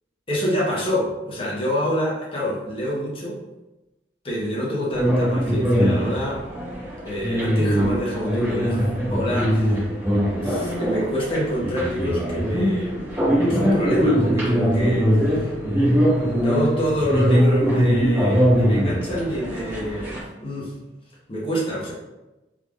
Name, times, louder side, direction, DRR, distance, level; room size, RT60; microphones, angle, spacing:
voice 1, 0.3-3.4 4.2-6.5 7.0-9.9 10.2-13.1 13.4-20.7 21.3-21.9, equal, 30° left, -5 dB, 1.0 m, -27 dB
sound 1, 4.9-20.2, equal, 15° right, 1.4 m, -21 dB
3.5 x 3.3 x 2.4 m, 1.0 s
head